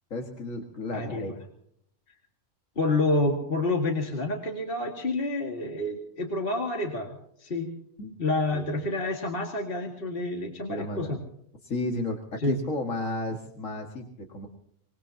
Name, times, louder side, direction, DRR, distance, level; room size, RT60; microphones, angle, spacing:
voice 1, 0.1-1.3 8.0-8.1 8.5-8.7 10.7-11.2 11.6-14.5, left 2 dB, 80° left, 2 dB, 2.3 m, -33 dB
voice 2, 2.8-7.7 8.2-11.2 12.4-12.6, left 2 dB, 45° left, 2 dB, 2.2 m, -28 dB
25.0 x 20.5 x 2.8 m, 0.70 s
omnidirectional pair, 1.3 m